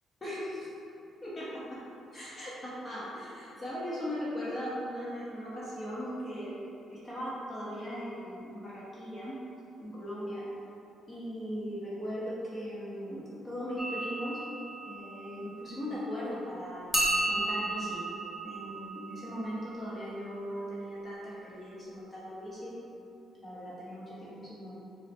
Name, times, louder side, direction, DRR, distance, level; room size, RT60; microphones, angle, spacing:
voice 1, 0.2-0.7 1.2-1.8 2.1-9.3 9.8-10.4 11.1-14.4 14.9-17.0 17.3-18.0 18.4-22.7 23.4-24.8, equal, 30° left, -8 dB, 0.9 m, -38 dB
sound 1, 13.8-16.2 16.9-20.8, right 2 dB, ahead, 0.7 m, -35 dB
3.9 x 2.1 x 4.2 m, 2.9 s
cardioid pair, 90°, 0 cm